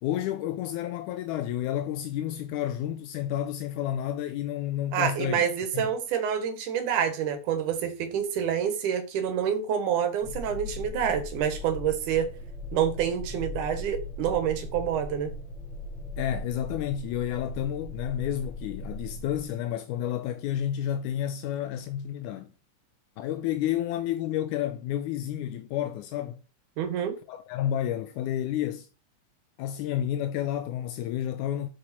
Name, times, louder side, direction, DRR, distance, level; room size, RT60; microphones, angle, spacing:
voice 1, 0.0-5.4 5.7-5.9 16.2-22.5 23.2-26.4 27.3-28.9 29.6-31.7, left 11 dB, 80° left, 2.0 m, -30 dB
voice 2, 4.9-12.3 12.7-15.3 26.8-27.1, right 8 dB, 80° right, 2.7 m, -27 dB
sound 1, 10.2-19.4, left 1 dB, ahead, 2.8 m, -38 dB
8.3 x 4.7 x 4.3 m
omnidirectional pair, 3.6 m